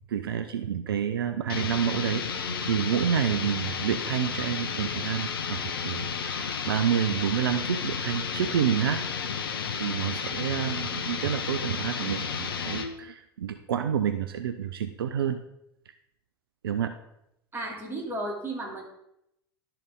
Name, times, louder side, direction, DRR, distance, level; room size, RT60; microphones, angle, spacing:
voice 1, 0.1-9.0 9.4-15.4 16.6-16.9, right 9 dB, 75° right, 9 dB, 0.5 m, -29 dB
sound 1, 1.5-12.9, left 6 dB, 75° left, 0.8 m, -32 dB
voice 2, 17.5-18.8, right 1 dB, 20° right, -2 dB, 2.9 m, -33 dB
12.0 x 4.6 x 3.7 m, 0.81 s
hypercardioid pair, 85°, 12 cm